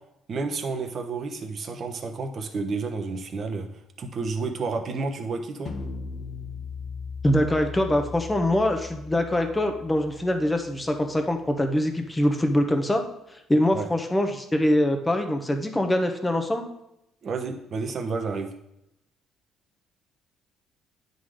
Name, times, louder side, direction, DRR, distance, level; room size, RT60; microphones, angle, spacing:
voice 1, 0.3-3.7 4.0-5.7 13.7-13.9 17.2-18.5, right 4 dB, 45° right, 5 dB, 1.0 m, -30 dB
sound 1, 5.7-11.0, left 4 dB, 45° left, 1.1 m, -38 dB
voice 2, 7.2-13.0 13.5-16.6, left 1 dB, 10° left, 5 dB, 1.0 m, -23 dB
9.5 x 4.0 x 4.9 m, 0.83 s
cardioid pair, 105°, 0 cm